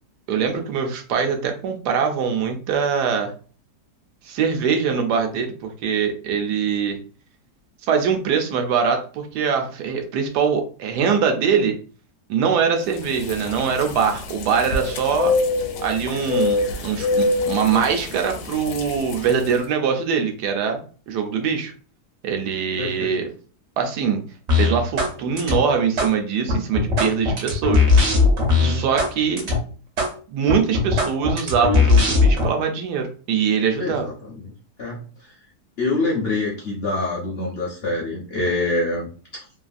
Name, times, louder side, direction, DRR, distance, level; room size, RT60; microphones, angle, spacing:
voice 1, 0.3-3.3 4.2-7.0 7.9-11.7 12.3-15.3 15.8-20.8 21.1-21.7 22.2-23.3 23.8-24.2 24.5-28.2 28.6-29.5 30.3-34.1, right 6 dB, 80° right, 4 dB, 1.1 m, -23 dB
sound 1, 12.9-19.6, left 3 dB, 85° left, 1.2 m, -26 dB
voice 2, 22.8-23.2 28.6-28.9 33.8-34.5 34.8-35.3 35.8-39.1, left 2 dB, 60° left, -4 dB, 0.6 m, -26 dB
sound 2, 24.5-25.1 25.4-26.1 26.5-29.1 29.4-29.6 30.0-30.1 30.5-32.5, left 3 dB, 50° right, 0.9 m, -18 dB
3.1 x 2.4 x 2.5 m, 0.40 s
omnidirectional pair, 1.8 m